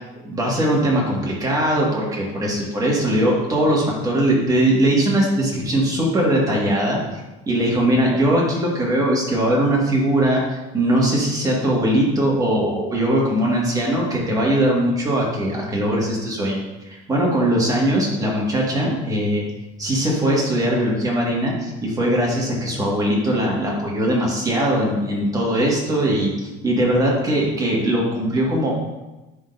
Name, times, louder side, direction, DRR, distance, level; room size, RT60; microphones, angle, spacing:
voice 1, 0.2-7.2 7.5-16.6 16.9-19.4 19.8-26.3 26.6-28.8, right 1 dB, 20° right, -4 dB, 1.9 m, -20 dB
10.5 x 3.7 x 2.7 m, 1.0 s
cardioid pair, 125°, 19 cm